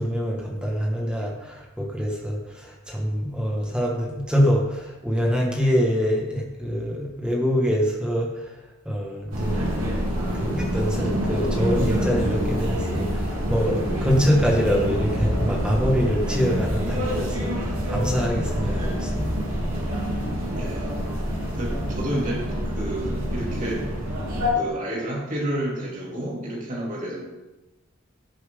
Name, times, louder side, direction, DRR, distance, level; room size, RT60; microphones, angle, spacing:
voice 1, 0.0-8.5 8.9-9.8 10.3-19.4, equal, 5° right, -2 dB, 2.0 m, -25 dB
sound 1, 9.3-24.5, equal, 85° right, 3.7 m, -26 dB
voice 2, 20.5-21.0 21.5-23.9 24.5-27.2, right 1 dB, 35° right, -4 dB, 3.1 m, -30 dB
17.0 x 7.6 x 4.0 m, 1.1 s
head